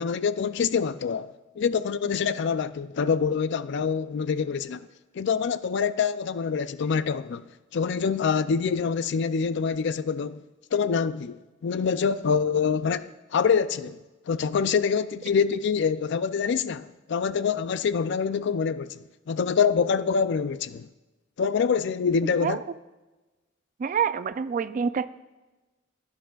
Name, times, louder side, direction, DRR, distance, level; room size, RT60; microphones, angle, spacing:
voice 1, 0.0-4.9 5.1-7.4 7.7-10.4 10.7-14.0 14.3-20.9 21.4-22.6, left 6 dB, 60° left, 0.4 m, -25 dB
voice 2, 23.8-25.1, right 6 dB, 40° right, 0.3 m, -26 dB
16.5 x 10.0 x 2.3 m
head